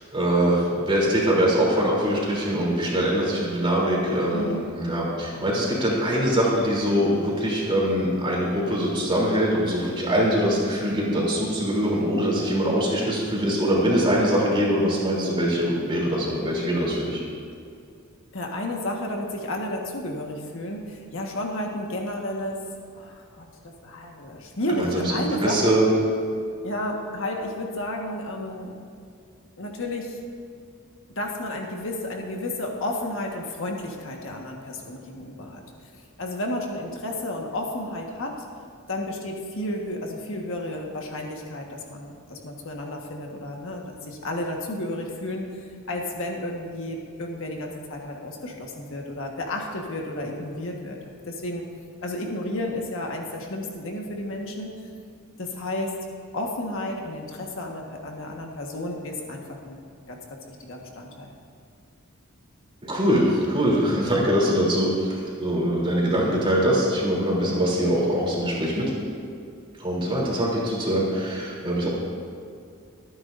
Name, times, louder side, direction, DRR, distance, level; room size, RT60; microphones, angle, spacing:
voice 1, 0.0-17.2 24.8-25.0 25.4-25.9 62.8-68.9 69.8-71.9, equal, 25° right, -4 dB, 3.2 m, -23 dB
voice 2, 4.3-4.6 18.3-22.6 22.9-25.8 26.6-28.7 29.6-30.2 31.1-35.6 35.9-38.4 38.9-45.5 45.9-51.0 51.2-51.7 52.0-54.7 55.4-56.0 56.3-59.8 60.1-61.3, left 1 dB, 65° left, 0 dB, 1.5 m, -32 dB
24.5 x 9.6 x 2.6 m, 2.3 s
head